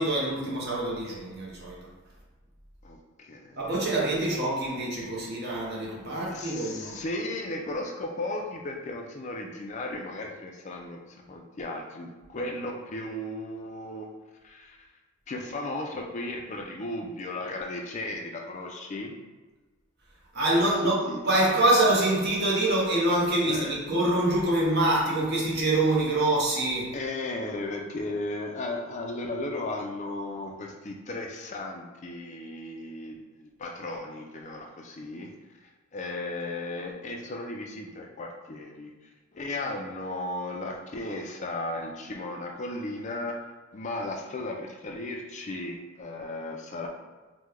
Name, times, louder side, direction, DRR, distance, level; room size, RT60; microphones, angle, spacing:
voice 1, 0.0-1.9 3.6-7.0 20.3-27.0, right 1 dB, 50° right, -4 dB, 0.7 m, -25 dB
voice 2, 2.8-3.7 6.3-14.1 14.4-14.8 15.3-19.1 20.6-21.2 23.5-23.8 26.1-26.2 26.9-35.3 35.9-38.9 39.3-43.5 43.7-46.9, left 2 dB, 35° left, 2 dB, 0.3 m, -35 dB
3.0 x 2.1 x 3.5 m, 1.3 s
head